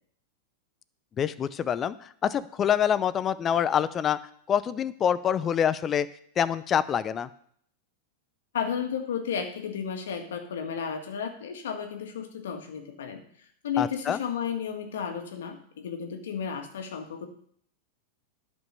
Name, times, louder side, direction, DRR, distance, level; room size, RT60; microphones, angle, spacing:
voice 1, 1.2-4.2 4.5-6.1 6.4-7.3 13.8-14.2, left 8 dB, 30° left, 16 dB, 0.6 m, -26 dB
voice 2, 8.5-13.2 13.6-17.3, left 7 dB, 75° left, 5 dB, 1.8 m, -33 dB
11.0 x 5.3 x 6.8 m, 0.63 s
hypercardioid pair, 105°, 0 cm